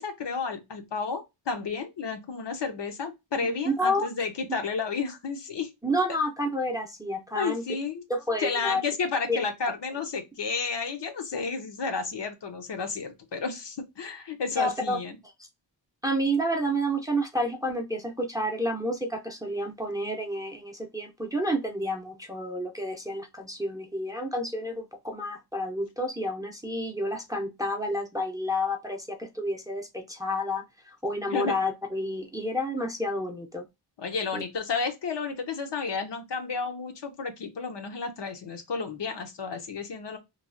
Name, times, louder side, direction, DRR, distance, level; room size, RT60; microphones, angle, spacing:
voice 1, 0.0-5.7 7.3-8.0 8.4-15.2 31.3-31.6 34.0-40.2, left 5 dB, 65° left, 0.8 m, -32 dB
voice 2, 3.4-4.1 5.8-7.6 8.1-8.8 9.3-9.4 14.6-15.0 16.0-30.6 31.0-33.6 34.3-34.4, equal, 10° right, 0.5 m, -30 dB
3.1 x 2.3 x 2.5 m
wide cardioid pair, 105°, 45 cm